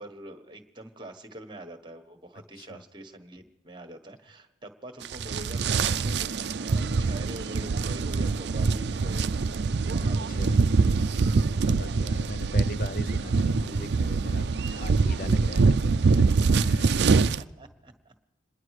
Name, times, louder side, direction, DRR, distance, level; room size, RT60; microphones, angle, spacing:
voice 1, 0.0-9.3 9.8-11.0 17.1-18.1, right 1 dB, 25° right, 6 dB, 1.4 m, -45 dB
sound 1, 5.0-17.4, right 4 dB, 60° right, 0.4 m, -24 dB
voice 2, 10.4-10.7 11.6-16.3 16.6-17.0, left 2 dB, 50° left, 14 dB, 0.6 m, -40 dB
27.0 x 11.0 x 4.8 m, 1.1 s
head